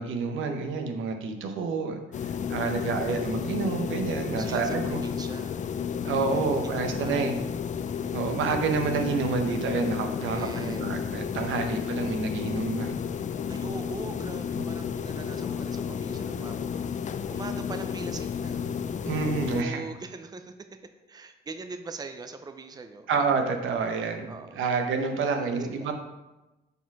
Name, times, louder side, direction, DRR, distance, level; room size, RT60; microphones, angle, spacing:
voice 1, 0.0-5.0 6.0-7.3 8.1-12.9 14.6-14.7 19.0-19.8 23.1-25.9, right 4 dB, 80° right, 5 dB, 0.9 m, -29 dB
sound 1, 2.1-19.6, left 7 dB, 40° left, 0.4 m, -32 dB
voice 2, 2.6-3.5 4.3-5.6 5.9-6.0 6.6-7.4 10.3-11.0 11.7-12.0 13.5-18.6 19.5-20.8 21.1-23.1 24.3-24.6 25.2-25.9, right 4 dB, 20° right, 8 dB, 0.6 m, -42 dB
6.9 x 4.3 x 4.6 m, 1.0 s
cardioid pair, 90°, 20 cm